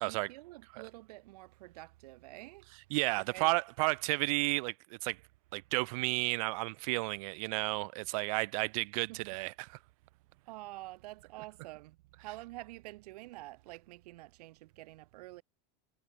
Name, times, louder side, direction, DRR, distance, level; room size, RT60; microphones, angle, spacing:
voice 1, 0.0-2.7 3.2-3.5 9.1-9.2 10.4-15.4, right 19 dB, 85° right, 1.7 m, -48 dB
voice 2, 2.9-4.7 5.0-5.2 5.5-9.8, right 26 dB, 60° right, 0.5 m, -32 dB
supercardioid pair, 170°, 19 cm